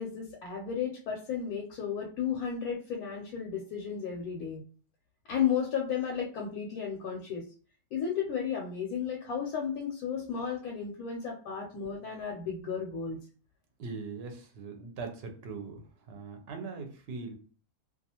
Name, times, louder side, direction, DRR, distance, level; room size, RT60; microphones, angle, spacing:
voice 1, 0.0-4.6 5.3-7.4 7.9-13.2, left 7 dB, 85° left, 0 dB, 1.1 m, -33 dB
voice 2, 13.8-17.3, right 4 dB, 60° right, 4 dB, 0.7 m, -41 dB
2.4 x 2.3 x 2.8 m, 0.40 s
omnidirectional pair, 1.5 m